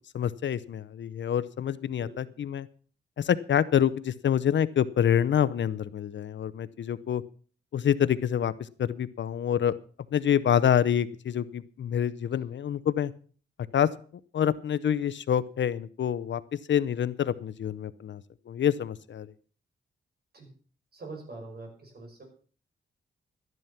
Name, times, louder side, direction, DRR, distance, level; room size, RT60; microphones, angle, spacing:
voice 1, 0.1-2.7 3.2-7.2 7.7-8.5 8.8-9.7 10.1-13.1 13.7-13.9 14.3-18.2 18.5-19.3, left 9 dB, 60° left, 16 dB, 0.7 m, -26 dB
voice 2, 2.0-2.3 20.3-20.5 20.9-22.2, right 3 dB, 45° right, 2 dB, 6.1 m, -44 dB
12.5 x 11.0 x 5.8 m, 0.42 s
wide cardioid pair, 135°, 21 cm